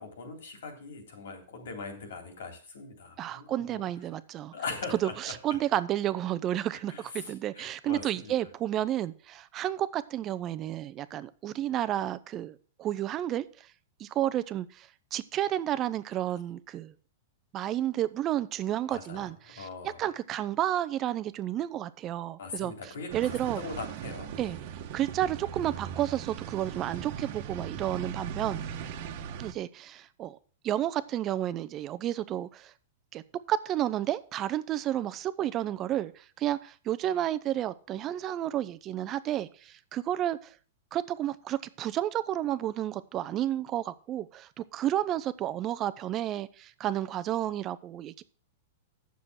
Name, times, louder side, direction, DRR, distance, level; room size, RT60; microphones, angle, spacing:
voice 1, 0.0-3.8 4.5-5.3 6.7-8.3 18.9-20.0 22.4-24.6, left 4 dB, 85° left, 3.4 m, -41 dB
voice 2, 3.2-4.5 4.9-13.7 14.0-16.9 17.5-19.7 20.0-22.7 23.1-23.6 24.4-24.6 24.9-28.6 29.4-30.4 30.6-32.7 33.1-33.2 33.5-40.5 40.9-48.2, right 12 dB, 30° right, 0.6 m, -31 dB
sound 1, 23.1-29.5, right 8 dB, 55° right, 1.2 m, -39 dB
8.7 x 6.9 x 6.3 m
hypercardioid pair, 140°, 0 cm